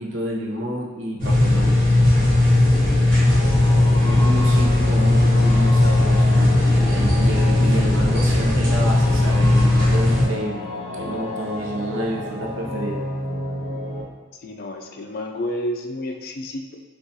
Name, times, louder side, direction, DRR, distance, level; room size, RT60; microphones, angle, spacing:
voice 1, 0.0-1.8 3.9-13.0, right 1 dB, 80° right, -2 dB, 0.7 m, -29 dB
sound 1, 1.2-10.2, left 1 dB, 50° right, 1.4 m, -17 dB
sound 2, 3.3-14.0, left 1 dB, 30° left, 0.9 m, -31 dB
voice 2, 14.4-16.8, left 1 dB, 50° left, 3 dB, 0.4 m, -30 dB
6.1 x 2.4 x 2.7 m, 1.3 s
head